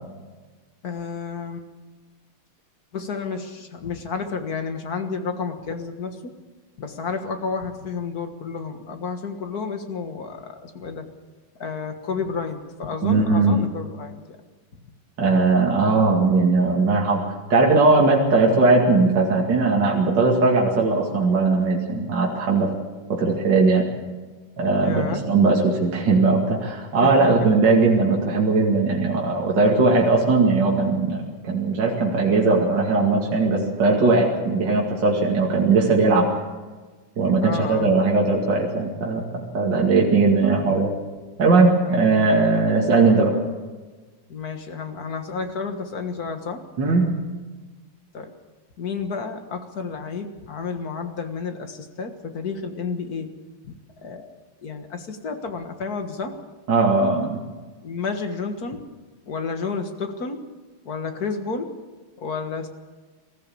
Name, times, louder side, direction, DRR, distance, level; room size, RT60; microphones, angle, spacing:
voice 1, 0.8-1.7 2.9-6.4 6.8-11.1 11.6-14.4 24.8-25.2 27.0-27.1 37.4-37.9 40.4-40.7 41.9-42.0 44.3-46.6 48.1-48.3 48.8-53.3 53.7-54.3 54.6-56.4 57.8-58.8 59.3-60.4 60.9-61.7 62.2-62.7, left 5 dB, 45° left, 6 dB, 1.9 m, -31 dB
voice 2, 13.0-13.6 15.2-17.2 17.5-22.7 23.1-23.9 24.6-36.3 37.2-40.9 41.4-43.4 46.8-47.1 56.7-57.4, right 3 dB, 55° right, -2 dB, 2.9 m, -19 dB
21.0 x 15.0 x 8.6 m, 1.3 s
omnidirectional pair, 2.4 m